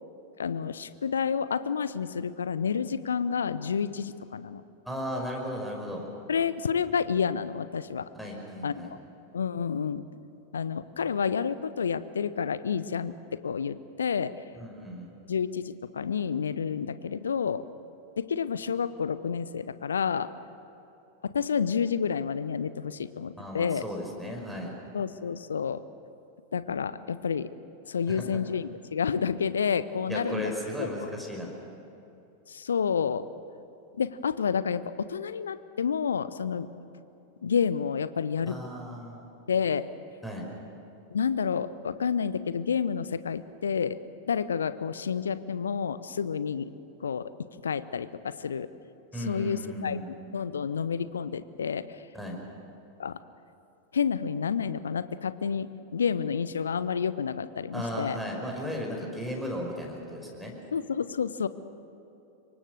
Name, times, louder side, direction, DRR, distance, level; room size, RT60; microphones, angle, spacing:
voice 1, 0.4-4.6 6.3-8.0 8.6-9.0 9.3-10.0 10.5-14.4 15.3-17.6 18.2-20.3 21.2-23.8 24.9-25.8 26.5-27.5 27.9-30.5 30.8-31.1 32.5-33.2 34.0-36.7 37.4-38.6 39.5-39.9 41.1-44.0 44.3-46.7 47.0-47.3 47.6-48.7 49.2-52.0 53.0-53.2 53.9-58.2 60.7-61.5, left 6 dB, 70° left, 15 dB, 0.8 m, -29 dB
voice 2, 4.9-6.1 8.2-8.9 14.6-15.1 23.4-24.7 28.0-28.3 30.1-31.5 38.4-39.3 40.2-40.5 49.1-50.1 52.1-52.4 57.7-60.5, equal, ahead, -1 dB, 5.5 m, -35 dB
26.0 x 23.5 x 6.6 m, 2.9 s
figure-of-eight pair, 90°, 0 cm